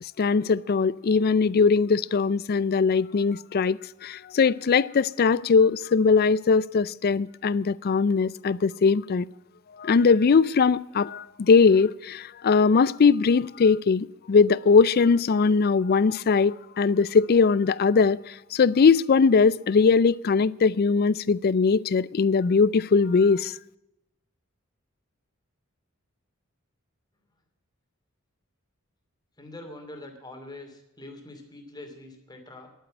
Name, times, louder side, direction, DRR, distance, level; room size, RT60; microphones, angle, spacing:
voice 1, 0.0-9.3 9.8-23.5, left 5 dB, 45° left, 0.4 m, -21 dB
voice 2, 29.4-32.7, left 2 dB, 20° left, 2.7 m, -43 dB
11.0 x 9.1 x 8.8 m
head